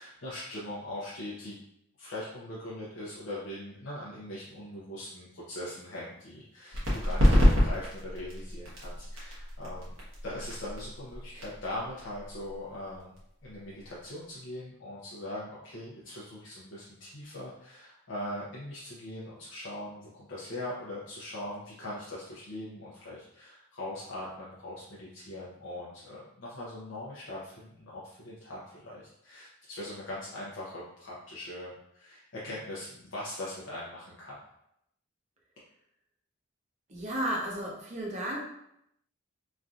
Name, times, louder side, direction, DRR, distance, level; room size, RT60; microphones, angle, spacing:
voice 1, 0.0-1.6 2.0-9.9 10.2-13.1 13.4-34.4, left 1 dB, 65° left, -7 dB, 0.6 m, -41 dB
sound 1, 6.7-14.1, equal, 75° right, 1.0 m, -28 dB
voice 2, 36.9-38.4, right 1 dB, 35° right, -2 dB, 0.6 m, -33 dB
3.1 x 2.6 x 2.4 m, 0.77 s
head